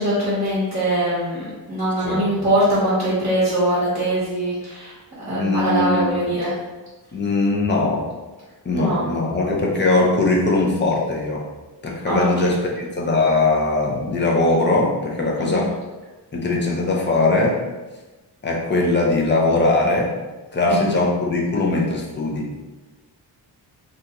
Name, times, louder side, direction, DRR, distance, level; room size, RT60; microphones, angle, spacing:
voice 1, 0.0-4.9 5.2-6.5 8.7-9.1 12.1-12.5 15.4-15.7 20.6-21.0, right 1 dB, 20° right, -10 dB, 1.1 m, -22 dB
voice 2, 5.3-6.1 7.1-8.1 8.6-11.4 11.8-15.7 16.3-17.6 18.4-20.1 20.5-22.5, left 2 dB, 25° left, -2 dB, 0.5 m, -20 dB
2.8 x 2.6 x 3.4 m, 1.2 s
wide cardioid pair, 150°, 40 cm